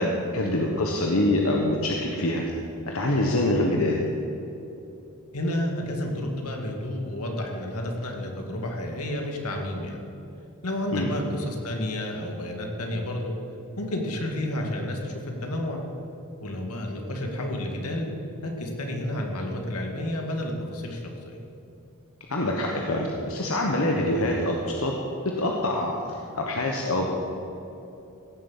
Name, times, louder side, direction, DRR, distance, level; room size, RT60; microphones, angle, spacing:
voice 1, 0.0-2.4 2.9-4.0 10.9-11.1 22.3-24.9 25.2-27.1, left 1 dB, 70° left, 0 dB, 1.3 m, -25 dB
voice 2, 5.3-10.0 10.6-13.4 13.8-15.8 16.4-18.1 18.4-21.4, left 1 dB, 90° left, 2 dB, 2.1 m, -30 dB
16.0 x 7.4 x 7.3 m, 2.9 s
head